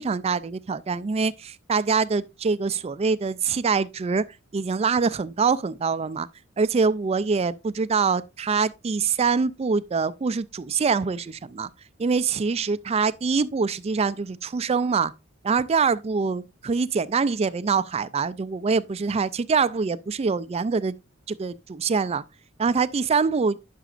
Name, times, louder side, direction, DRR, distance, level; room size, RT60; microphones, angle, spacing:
voice 1, 0.0-4.2 4.5-6.3 6.6-11.7 12.0-15.1 15.4-20.9 21.3-22.2 22.6-23.6, right 5 dB, 30° right, 0.3 m, -24 dB
11.0 x 6.0 x 2.5 m
head